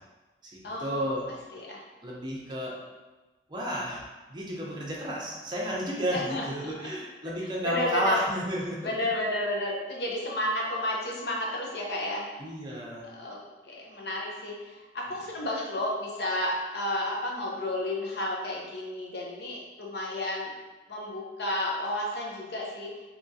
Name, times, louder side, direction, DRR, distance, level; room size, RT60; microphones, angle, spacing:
voice 1, 0.5-1.2 2.0-2.8 3.5-4.0 4.3-8.9 12.4-13.1, equal, 25° right, -3 dB, 0.6 m, -31 dB
voice 2, 1.5-1.8 6.1-6.9 7.6-8.2 8.8-12.3 13.0-13.4 13.7-20.5 20.9-22.9, left 1 dB, 65° left, -1 dB, 0.7 m, -32 dB
3.5 x 2.8 x 2.7 m, 1.2 s
head